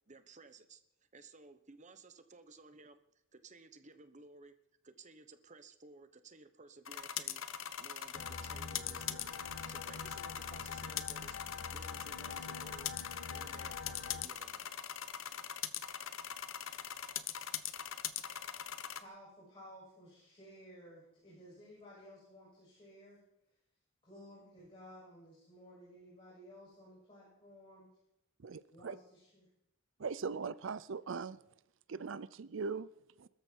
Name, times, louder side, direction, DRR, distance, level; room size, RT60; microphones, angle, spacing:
voice 1, 0.1-0.8 1.1-3.0 3.3-4.6 4.8-7.4 7.8-11.4 11.7-12.9 13.3-14.7, right 3 dB, 35° right, 10 dB, 1.1 m, -57 dB
sound 1, 6.9-19.0, left 9 dB, 75° left, 0.9 m, -42 dB
sound 2, 8.1-14.3, left 4 dB, 55° left, 1.3 m, -46 dB
voice 2, 19.0-23.2 24.0-27.9 28.7-29.5, equal, 25° left, -6 dB, 7.4 m, -55 dB
voice 3, 28.4-28.9 30.0-31.4 31.9-32.9 33.2-33.3, right 5 dB, 65° right, 17 dB, 0.5 m, -40 dB
21.5 x 13.5 x 4.6 m, 0.82 s
head